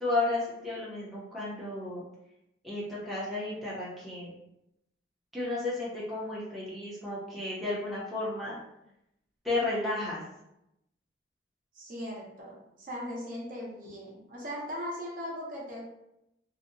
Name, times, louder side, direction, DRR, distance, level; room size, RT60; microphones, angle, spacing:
voice 1, 0.0-2.0 2.6-4.3 5.3-8.6 9.4-10.2, left 2 dB, ahead, -9 dB, 0.5 m, -33 dB
voice 2, 11.7-15.9, equal, 45° right, -4 dB, 0.6 m, -39 dB
2.6 x 2.0 x 2.5 m, 0.84 s
head